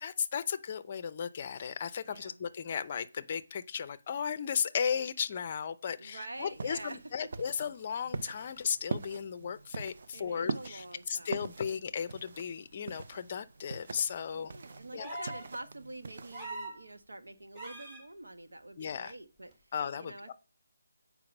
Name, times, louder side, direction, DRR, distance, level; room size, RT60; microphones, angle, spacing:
voice 1, 0.0-14.5 14.9-15.1 18.8-19.1 19.7-20.3, left 7 dB, 30° left, 0.5 m, -35 dB
voice 2, 2.0-2.4 6.0-7.0 10.1-11.9 14.3-20.3, right 2 dB, 85° right, 1.1 m, -47 dB
sound 1, 6.4-16.5, right 4 dB, 45° right, 0.5 m, -43 dB
sound 2, 15.0-15.5 16.3-16.8 17.6-18.0 19.5-19.6, right 2 dB, 20° right, 1.4 m, -41 dB
7.6 x 4.6 x 5.3 m
figure-of-eight pair, 165°, 0 cm